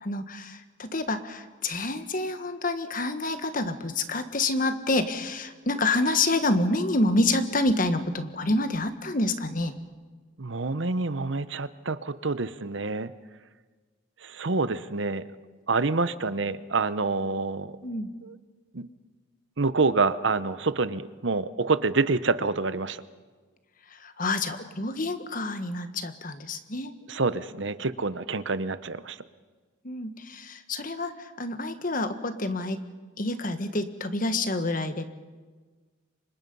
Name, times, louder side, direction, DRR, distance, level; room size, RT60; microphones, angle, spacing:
voice 1, 0.0-9.8 17.8-18.1 23.9-26.9 29.8-32.8 33.2-35.0, left 2 dB, 45° left, 9 dB, 1.6 m, -28 dB
voice 2, 10.4-13.1 14.2-15.3 15.7-17.7 18.2-18.3 18.7-18.9 19.6-23.0 27.1-29.2, right 3 dB, 70° right, 14 dB, 0.9 m, -27 dB
29.0 x 25.5 x 5.5 m, 1.4 s
head